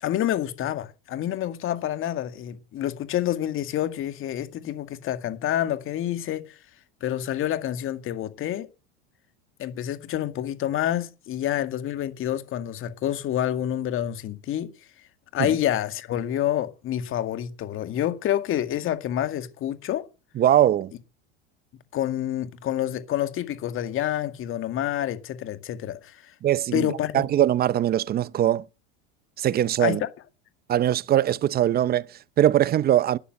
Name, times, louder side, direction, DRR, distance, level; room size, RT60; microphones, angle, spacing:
voice 1, 0.0-6.6 7.0-8.7 9.6-14.7 15.3-20.1 21.9-26.3 26.7-27.3 29.8-30.1, left 11 dB, 45° left, 2.1 m, -28 dB
voice 2, 20.4-20.9 26.4-26.9 27.1-28.7 29.4-30.0 30.7-33.2, right 11 dB, 30° right, 0.6 m, -21 dB
12.5 x 9.9 x 7.8 m
supercardioid pair, 105°, 30 cm